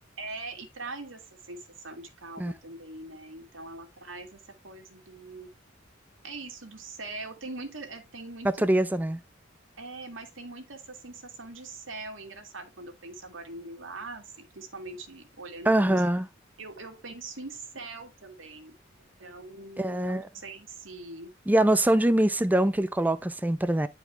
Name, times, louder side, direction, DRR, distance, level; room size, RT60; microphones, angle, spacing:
voice 1, 0.2-5.5 6.2-8.7 9.8-16.0 16.6-21.3, right 3 dB, 80° right, 2.1 m, -42 dB
voice 2, 8.4-9.2 15.7-16.3 19.8-20.3 21.5-23.9, right 1 dB, 10° right, 0.5 m, -23 dB
11.0 x 4.7 x 3.3 m
head